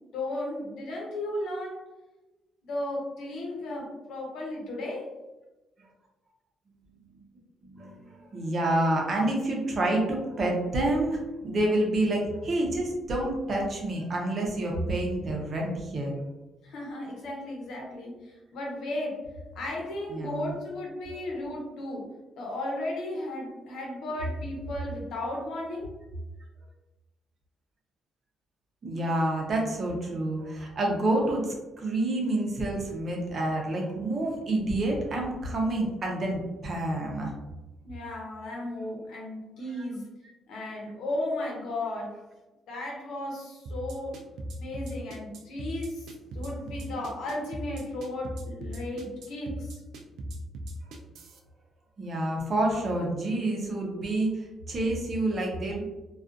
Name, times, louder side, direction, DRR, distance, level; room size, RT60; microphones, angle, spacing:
voice 1, 0.1-1.8 2.6-5.1 16.6-18.1 18.5-19.2 19.5-22.0 22.4-25.9 37.8-40.0 40.5-42.1 42.7-44.2 44.6-46.0 46.3-49.7, left 1 dB, 80° left, -2 dB, 0.8 m, -35 dB
voice 2, 6.8-7.2 7.6-16.2 20.1-20.5 21.1-21.2 28.8-37.3 39.8-39.9 52.0-55.9, right 1 dB, 45° right, -1 dB, 0.7 m, -28 dB
sound 1, 43.7-51.4, right 1 dB, 80° right, 0.4 m, -38 dB
2.4 x 2.4 x 2.4 m, 1.1 s
cardioid pair, 90°, 0 cm